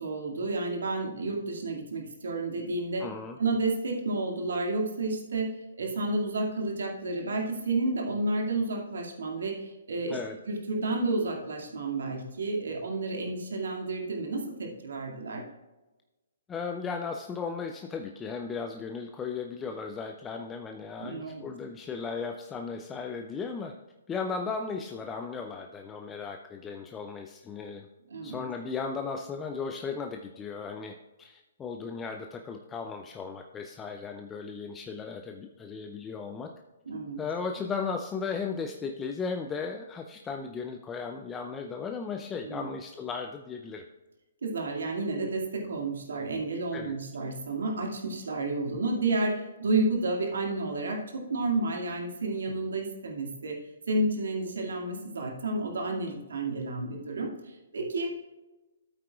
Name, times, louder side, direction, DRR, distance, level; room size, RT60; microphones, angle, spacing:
voice 1, 0.0-3.0 3.4-5.5 5.8-10.2 10.5-15.4 21.0-21.4 28.1-28.4 36.9-37.2 42.4-42.7 44.4-53.5 53.9-58.1, right 2 dB, 70° right, 0 dB, 2.2 m, -31 dB
voice 2, 3.0-3.4 10.1-10.4 16.5-23.7 24.1-27.9 28.2-36.5 37.2-43.8 46.7-47.0, left 5 dB, 15° left, 4 dB, 0.5 m, -36 dB
13.5 x 8.4 x 2.4 m, 1.1 s
figure-of-eight pair, 130°, 0 cm